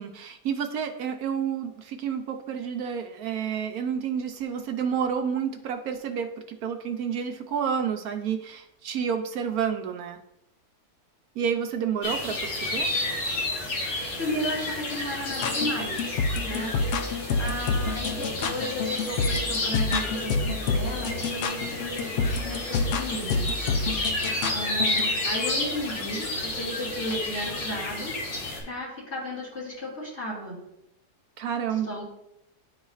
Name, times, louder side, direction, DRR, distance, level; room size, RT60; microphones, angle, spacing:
voice 1, 0.0-10.2 11.4-12.9 31.4-31.9, right 7 dB, 75° right, 5 dB, 1.0 m, -30 dB
sound 1, 12.0-28.6, left 2 dB, 90° left, 2.1 m, -31 dB
voice 2, 14.2-16.2 16.4-16.7 17.0-22.1 22.4-23.5 24.5-28.1 28.6-30.6 31.9-32.0, equal, 45° left, -6 dB, 2.6 m, -34 dB
sound 2, 15.3-25.1, left 4 dB, 65° left, 0.8 m, -28 dB
11.0 x 4.0 x 2.4 m, 0.85 s
omnidirectional pair, 1.7 m